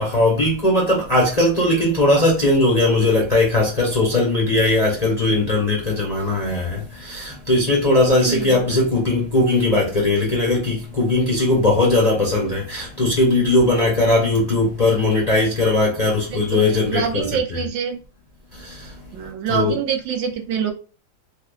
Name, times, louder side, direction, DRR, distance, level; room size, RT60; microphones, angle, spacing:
voice 1, 0.0-17.7 18.5-19.1 19.5-19.8, left 2 dB, 30° left, 0.7 m, -19 dB
voice 2, 16.9-18.0 19.1-20.7, right 7 dB, 85° right, 1.4 m, -24 dB
3.5 x 3.2 x 2.3 m
omnidirectional pair, 1.9 m